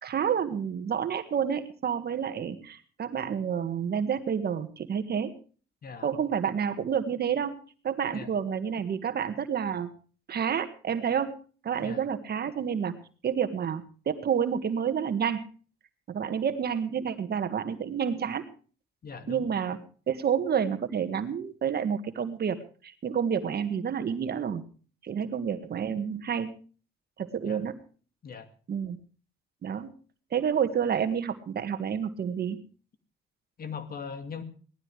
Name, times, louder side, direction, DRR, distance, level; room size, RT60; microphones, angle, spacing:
voice 1, 0.0-5.3 6.0-7.5 7.8-9.9 10.3-11.3 11.6-12.9 13.2-15.4 16.1-18.4 19.3-22.6 22.8-24.6 25.0-26.5 27.2-27.8 28.7-29.0 29.6-29.9 30.3-32.6, right 7 dB, 55° right, 9 dB, 1.8 m, -29 dB
voice 2, 19.0-19.4 27.4-27.6 28.2-28.5 33.6-34.4, left 6 dB, 50° left, 9 dB, 2.4 m, -39 dB
18.0 x 12.5 x 4.9 m, 0.39 s
cardioid pair, 90°, 20 cm